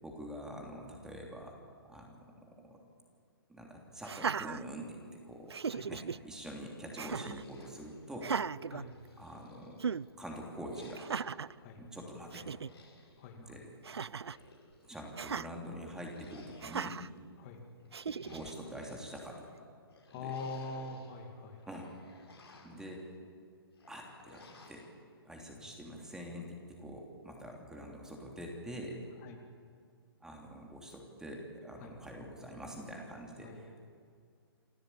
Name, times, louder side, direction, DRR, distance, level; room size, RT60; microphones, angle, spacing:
voice 1, 0.0-1.5 1.9-2.8 3.5-5.6 5.9-8.3 9.2-9.8 10.2-11.0 11.8-12.5 13.4-13.7 14.8-17.0 18.1-19.5 20.1-20.3 21.7-21.9 22.6-23.1 23.9-24.9 25.2-29.0 30.2-33.8, equal, 5° right, 0 dB, 3.1 m, -45 dB
Laughter, 4.0-5.1 5.5-6.2 7.0-7.4 8.2-9.4 9.8-10.1 10.9-11.5 12.0-12.1 12.3-12.7 13.8-14.4 15.2-15.5 16.6-17.1 17.9-18.5, right 6 dB, 85° right, 0.5 m, -37 dB
sound 1, 7.3-8.5 8.9-10.1 10.7-11.4 12.5-13.2 14.0-15.0 16.0-17.1 17.8-19.0 19.9-21.1 21.5-22.9 23.7-24.9, left 3 dB, 80° left, 5.9 m, -58 dB
voice 2, 13.2-13.6 17.4-17.6 20.1-21.7 25.6-25.7 29.2-29.4 31.8-31.9 33.4-33.6, left 3 dB, 35° left, 3 dB, 2.4 m, -44 dB
27.5 x 13.0 x 8.8 m, 2.2 s
hypercardioid pair, 135°, 13 cm